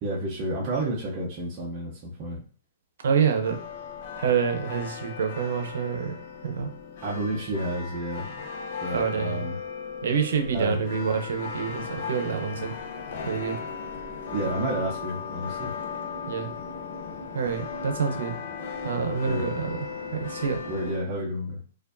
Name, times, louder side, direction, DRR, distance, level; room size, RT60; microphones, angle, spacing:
voice 1, 0.0-2.4 7.0-8.5 8.8-9.6 10.5-10.8 14.3-15.7 19.3-19.4 20.7-21.6, right 1 dB, 25° right, -5 dB, 0.6 m, -30 dB
voice 2, 3.0-3.6 4.2-6.2 6.4-6.7 8.9-9.5 10.0-12.7 13.2-13.6 14.4-14.7 16.3-16.5 17.3-18.4 18.8-19.8 20.1-20.6, right 6 dB, 75° right, 6 dB, 0.8 m, -27 dB
sound 1, 3.4-21.0, left 6 dB, 45° left, 0.6 m, -37 dB
sound 2, 10.0-21.0, left 2 dB, 90° left, 0.6 m, -43 dB
4.5 x 2.5 x 2.6 m, 0.42 s
hypercardioid pair, 170°, 0 cm